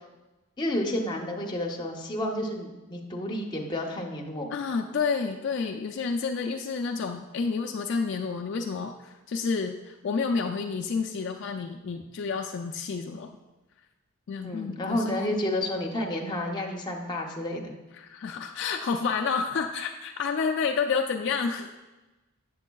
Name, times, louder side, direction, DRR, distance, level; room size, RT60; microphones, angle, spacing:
voice 1, 0.6-4.5 14.4-17.7, left 1 dB, 20° left, 0 dB, 0.6 m, -30 dB
voice 2, 4.5-13.3 14.3-15.4 18.0-21.7, left 5 dB, 55° left, 3 dB, 0.3 m, -30 dB
7.3 x 7.1 x 2.3 m, 1.1 s
head